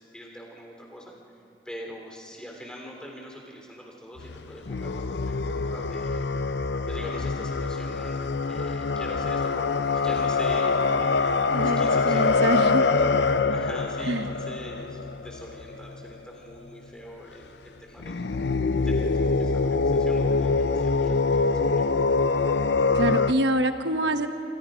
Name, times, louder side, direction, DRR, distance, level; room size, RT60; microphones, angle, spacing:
voice 1, 0.0-1.4 1.7-6.3 6.9-12.9 13.3-21.9, equal, 5° left, -1 dB, 3.4 m, -43 dB
sound 1, 4.2-16.1 18.0-23.3, left 4 dB, 80° left, 0.6 m, -25 dB
voice 2, 11.5-12.8 14.1-14.3 22.9-24.3, right 1 dB, 85° right, 7 dB, 1.1 m, -25 dB
28.5 x 25.5 x 5.1 m, 2.7 s
head